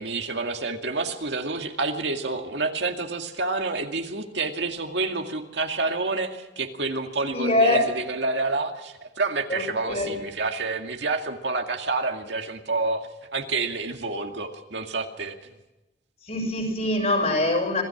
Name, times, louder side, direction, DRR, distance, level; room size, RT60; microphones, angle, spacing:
voice 1, 0.0-15.5, right 3 dB, 75° right, 4 dB, 2.2 m, -28 dB
voice 2, 7.3-7.9 9.5-10.2 16.3-17.8, left 1 dB, 40° left, 3 dB, 6.2 m, -23 dB
26.5 x 17.5 x 6.0 m, 1.0 s
head